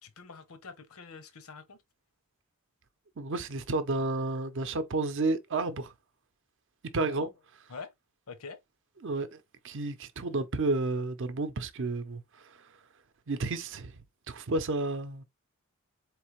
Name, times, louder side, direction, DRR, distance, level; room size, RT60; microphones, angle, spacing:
voice 1, 0.0-1.8 7.0-7.3 7.7-7.9 8.3-8.6, left 4 dB, 80° left, 0.8 m, -45 dB
voice 2, 3.2-5.9 6.9-7.3 9.0-9.4 9.6-12.2 13.3-14.0 14.3-15.2, right 2 dB, 55° right, 0.6 m, -31 dB
4.3 x 3.2 x 3.1 m
head